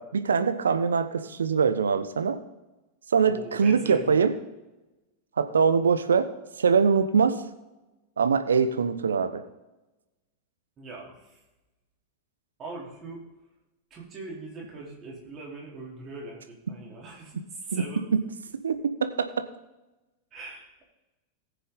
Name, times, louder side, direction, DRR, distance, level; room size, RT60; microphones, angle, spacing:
voice 1, 0.0-2.4 3.1-4.3 5.4-6.3 6.6-7.3 8.2-9.4 17.7-17.8 18.6-18.7 19.0-19.3, right 6 dB, 70° right, 10 dB, 0.8 m, -23 dB
voice 2, 3.3-4.2 10.8-11.4 12.6-13.2 13.9-18.1 20.3-20.8, right 2 dB, 30° right, -2 dB, 3.8 m, -41 dB
19.0 x 6.9 x 3.8 m, 1.0 s
figure-of-eight pair, 90°, 0 cm